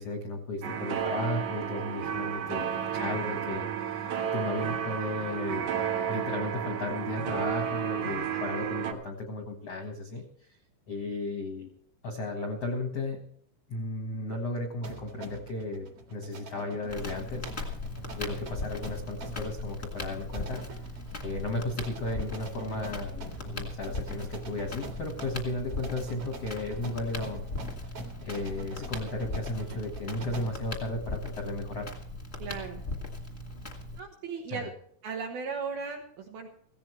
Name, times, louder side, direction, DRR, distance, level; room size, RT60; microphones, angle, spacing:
voice 1, 0.0-5.7 6.1-10.2 10.9-11.7 12.0-13.2 13.7-15.8 16.1-17.5 18.1-20.6 21.2-27.4 28.2-31.9 34.5-34.7, left 2 dB, 75° left, 3 dB, 1.4 m, -34 dB
sound 1, 0.6-8.9, right 8 dB, 90° right, 1.6 m, -32 dB
sound 2, 14.8-30.7, right 2 dB, 50° right, 1.7 m, -45 dB
Crackle, 16.9-34.0, left 2 dB, 45° left, 0.8 m, -39 dB
voice 2, 32.4-32.8 33.9-34.7 35.0-36.5, right 5 dB, 70° right, 2 dB, 2.3 m, -37 dB
16.5 x 16.0 x 3.2 m, 0.66 s
omnidirectional pair, 5.7 m